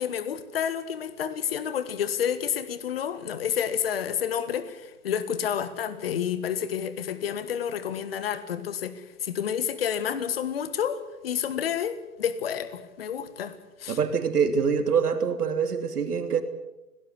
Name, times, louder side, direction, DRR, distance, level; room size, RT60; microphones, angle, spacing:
voice 1, 0.0-13.5 13.8-14.0, left 8 dB, 40° left, 13 dB, 1.6 m, -30 dB
voice 2, 13.9-16.4, right 6 dB, 80° right, 7 dB, 3.1 m, -25 dB
22.0 x 18.5 x 8.2 m, 1.0 s
hypercardioid pair, 170°, 45 cm